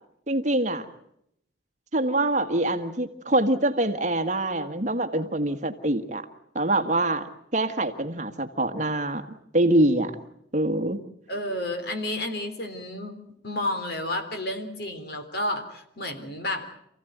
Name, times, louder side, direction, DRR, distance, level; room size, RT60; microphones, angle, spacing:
voice 1, 0.3-0.8 1.9-6.2 6.5-7.2 7.5-10.1 10.5-11.0, right 1 dB, 40° right, 8 dB, 1.6 m, -24 dB
voice 2, 11.3-13.2 13.4-16.7, left 1 dB, 55° left, 7 dB, 3.6 m, -31 dB
28.5 x 16.0 x 9.3 m, 0.76 s
head